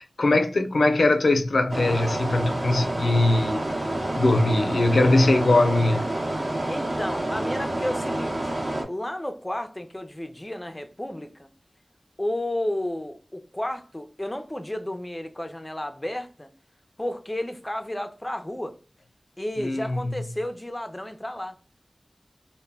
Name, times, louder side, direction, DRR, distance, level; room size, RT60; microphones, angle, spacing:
voice 1, 0.0-3.6 4.1-6.1 19.6-20.1, left 2 dB, 90° left, 0.4 m, -21 dB
sound 1, 1.7-8.8, right 1 dB, 50° right, 0.8 m, -28 dB
voice 2, 6.7-8.5 8.9-11.5 12.2-16.5 17.0-18.8 19.4-21.6, left 1 dB, 20° left, 0.4 m, -32 dB
2.1 x 2.1 x 3.3 m
wide cardioid pair, 55°, 0 cm